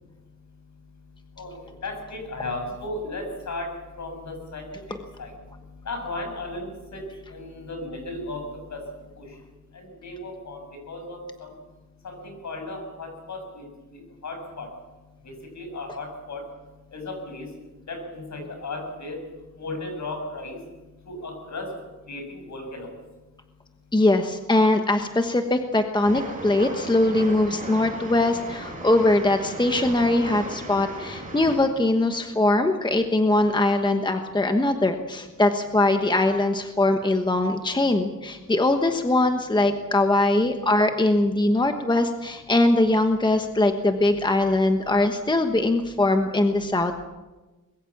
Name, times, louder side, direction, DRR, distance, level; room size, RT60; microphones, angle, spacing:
voice 1, 1.4-5.3 5.8-7.0 7.3-8.8 9.2-9.3 9.7-10.6 10.9-11.5 12.0-13.6 13.9-14.7 15.2-16.4 16.9-17.5 17.9-19.2 19.6-20.6 21.1-21.7 22.1-22.9, left 2 dB, 60° left, 4 dB, 6.7 m, -35 dB
voice 2, 23.9-47.0, left 2 dB, 15° left, 6 dB, 1.2 m, -21 dB
Train, 26.0-31.6, right 2 dB, 25° right, 5.6 m, -36 dB
23.5 x 21.5 x 7.3 m, 1.2 s
wide cardioid pair, 160°, 31 cm